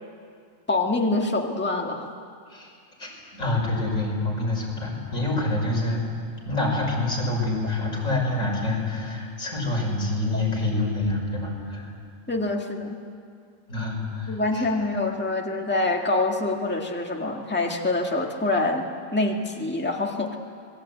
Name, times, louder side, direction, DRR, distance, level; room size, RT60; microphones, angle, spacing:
voice 1, 0.7-2.1 12.3-13.0 14.3-18.9 19.1-20.4, left 2 dB, 10° left, 1 dB, 1.8 m, -25 dB
voice 2, 3.0-6.0 6.4-11.9 13.7-14.7, left 2 dB, 90° left, -2 dB, 6.5 m, -27 dB
26.5 x 20.5 x 9.1 m, 2.3 s
omnidirectional pair, 1.4 m